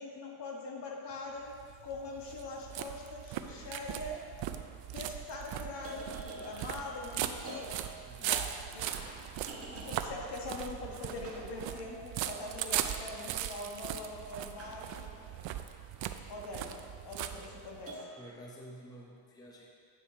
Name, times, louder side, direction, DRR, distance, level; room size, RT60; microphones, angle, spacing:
voice 1, 0.0-1.5 1.8-4.2 4.9-7.7 8.2-8.9 9.7-15.1 16.3-16.7 17.0-18.0, left 2 dB, 60° left, -1 dB, 1.4 m, -42 dB
sound 1, 1.4-17.9, right 11 dB, 70° right, 0.6 m, -39 dB
voice 2, 3.4-4.0 8.1-8.3 16.7-16.8 17.3-17.7 18.2-19.7, equal, 10° left, -3 dB, 0.8 m, -52 dB
sound 2, 3.7-3.8 4.4-4.8 5.6-12.6 14.6-16.5 17.9-18.3, right 2 dB, 30° right, 1.2 m, -49 dB
8.2 x 6.3 x 4.3 m, 2.2 s
cardioid pair, 140°, 46 cm